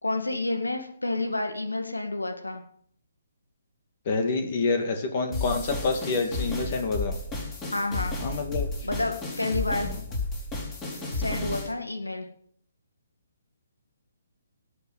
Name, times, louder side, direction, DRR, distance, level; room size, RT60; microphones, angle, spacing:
voice 1, 0.0-2.6 7.7-8.1 8.8-9.9 11.1-12.3, left 2 dB, 85° left, 5 dB, 2.1 m, -29 dB
voice 2, 4.1-7.2 8.2-8.7 9.8-10.0, left 3 dB, 40° left, 5 dB, 2.4 m, -27 dB
sound 1, 5.3-11.7, left 2 dB, 20° left, 4.6 m, -32 dB
18.0 x 6.7 x 7.8 m, 0.63 s
figure-of-eight pair, 140°, 0 cm